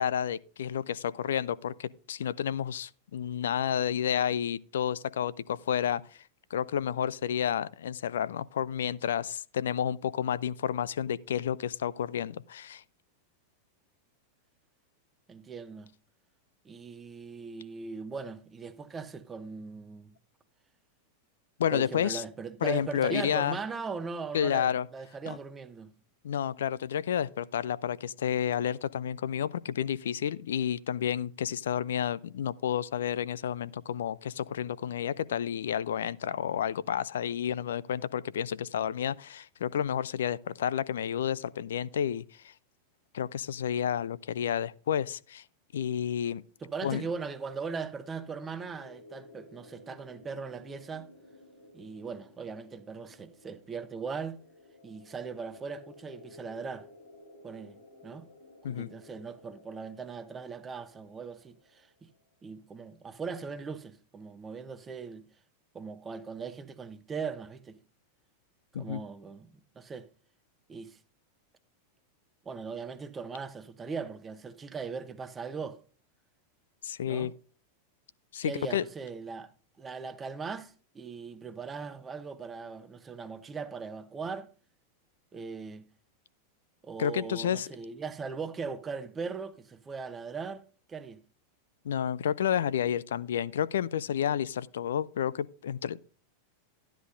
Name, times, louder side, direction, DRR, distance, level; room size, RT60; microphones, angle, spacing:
voice 1, 0.0-6.0 6.5-12.8 21.6-22.2 22.6-23.6 24.3-24.9 25.3-25.4 26.2-42.5 43.1-45.4 45.7-46.4 46.8-47.0 58.6-58.9 68.7-69.0 76.8-77.3 78.3-78.8 87.0-87.7 91.8-96.1, left 9 dB, 60° left, 0.4 m, -30 dB
voice 2, 15.3-15.9 16.6-20.1 21.7-25.9 46.6-51.1 51.7-54.4 54.8-56.9 57.4-57.8 58.0-58.3 58.7-62.1 62.4-65.2 65.7-67.8 68.7-70.1 70.7-71.0 72.4-75.8 77.1-77.3 78.4-79.5 79.8-84.5 85.3-85.9 86.8-91.2, right 5 dB, 20° right, 0.9 m, -39 dB
sound 1, 46.5-62.2, left 2 dB, 80° left, 2.9 m, -56 dB
12.5 x 10.0 x 2.6 m
figure-of-eight pair, 90°, 0 cm